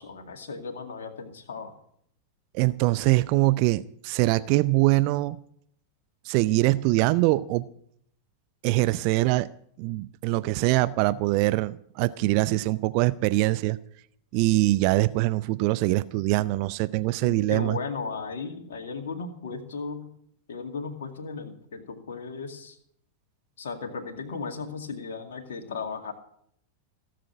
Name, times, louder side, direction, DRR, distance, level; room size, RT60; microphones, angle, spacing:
voice 1, 0.0-1.8 17.2-20.1 20.5-22.8 23.6-26.1, left 4 dB, 60° left, 3 dB, 2.2 m, -36 dB
voice 2, 2.5-5.4 6.2-7.7 8.6-9.5 9.8-13.8 14.3-17.8, right 19 dB, 45° right, 16 dB, 0.5 m, -23 dB
17.5 x 7.6 x 9.2 m, 0.68 s
figure-of-eight pair, 90°, 0 cm